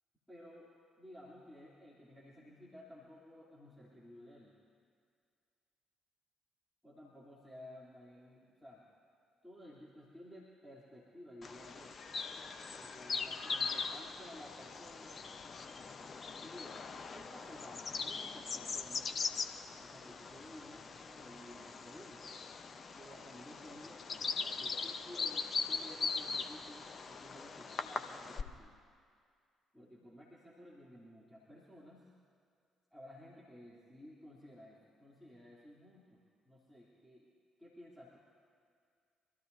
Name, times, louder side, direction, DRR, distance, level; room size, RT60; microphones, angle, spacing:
voice 1, 0.3-0.7 1.0-4.5 6.8-8.9 9.4-12.0 12.7-15.2 16.3-16.8 17.1-19.1 19.8-22.3 23.0-28.7 29.7-32.1 32.9-37.3 37.6-38.2, equal, ahead, -7 dB, 3.3 m, -55 dB
Bird vocalization bird call bird song, 11.4-28.4, left 5 dB, 40° left, 0.9 m, -41 dB
25.5 x 14.5 x 2.8 m, 2.2 s
figure-of-eight pair, 45°, 0 cm